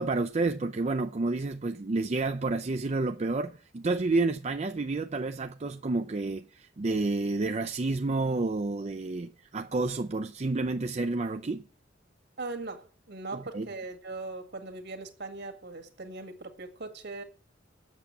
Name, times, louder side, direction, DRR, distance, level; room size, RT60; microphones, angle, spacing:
voice 1, 0.0-11.6 13.3-13.7, right 3 dB, 35° right, 0.5 m, -30 dB
voice 2, 12.4-17.2, right 3 dB, 60° right, 1.9 m, -40 dB
8.2 x 7.1 x 8.3 m
head